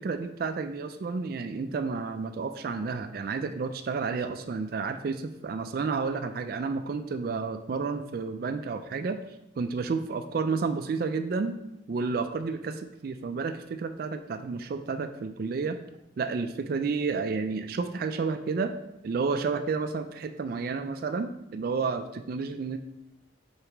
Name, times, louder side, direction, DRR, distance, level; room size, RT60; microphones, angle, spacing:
voice 1, 0.0-11.5 11.9-15.8 16.2-18.7 19.0-22.8, right 4 dB, 50° right, 9 dB, 0.3 m, -31 dB
6.6 x 4.8 x 3.0 m, 0.87 s
head